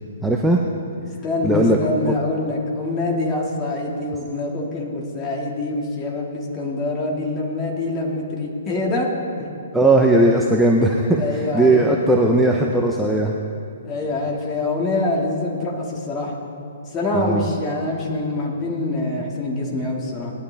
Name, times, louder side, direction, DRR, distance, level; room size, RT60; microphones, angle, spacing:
voice 1, 0.2-0.6 1.4-1.8 9.7-13.3 17.1-17.5, right 1 dB, 5° right, -1 dB, 0.6 m, -17 dB
voice 2, 1.2-9.1 9.4-9.5 11.2-12.0 13.8-16.3 16.9-20.3, left 2 dB, 20° left, -2 dB, 2.1 m, -25 dB
19.5 x 11.5 x 3.5 m, 2.5 s
hypercardioid pair, 160°, 0 cm